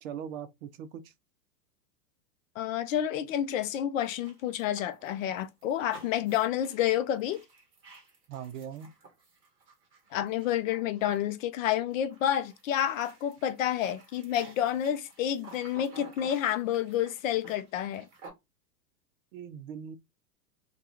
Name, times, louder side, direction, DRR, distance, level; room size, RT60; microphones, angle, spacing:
voice 1, 0.0-1.1 8.3-8.9 19.3-20.0, right 8 dB, 55° right, 0.6 m, -40 dB
voice 2, 2.6-7.4 10.1-18.1, left 11 dB, 55° left, 0.5 m, -29 dB
sound 1, 4.0-11.6 11.9-18.3, right 3 dB, 25° right, 1.1 m, -53 dB
2.3 x 2.3 x 2.8 m
hypercardioid pair, 110°, 50 cm